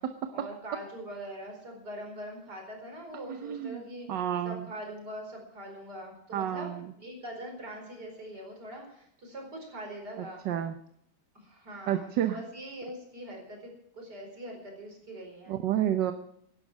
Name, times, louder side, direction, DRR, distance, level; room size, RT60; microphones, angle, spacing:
voice 1, 0.3-4.1 4.4-10.4 11.4-15.5, right 1 dB, 65° right, 2 dB, 5.3 m, -43 dB
voice 2, 3.3-3.8 4.1-4.7 6.3-6.9 10.5-10.8 11.9-12.4 15.5-16.1, right 10 dB, 80° right, 7 dB, 1.6 m, -30 dB
17.0 x 12.0 x 6.2 m, 0.73 s
omnidirectional pair, 1.9 m